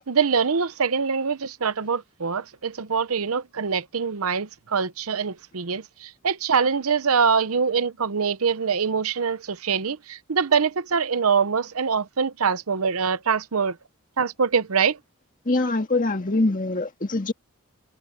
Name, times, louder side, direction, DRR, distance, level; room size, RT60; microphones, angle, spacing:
voice 1, 0.1-13.8 14.2-15.0, right 6 dB, 80° right, 0.8 m, -24 dB
voice 2, 15.5-17.3, left 2 dB, 40° left, 1.9 m, -23 dB
head